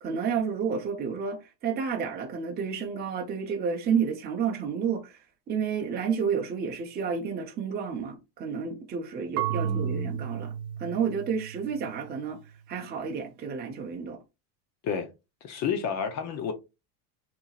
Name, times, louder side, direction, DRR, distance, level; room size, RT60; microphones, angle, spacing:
voice 1, 0.0-5.2 5.5-10.5 10.8-12.4 12.7-14.2, right 6 dB, 20° right, 0.8 m, -30 dB
Marimba xylophone / Wood, 9.4-12.2, right 9 dB, 85° right, 0.6 m, -33 dB
voice 2, 9.5-10.2 14.8-15.1 15.4-16.5, left 7 dB, 35° left, 0.7 m, -31 dB
6.9 x 3.0 x 2.4 m
cardioid pair, 160°, 45 cm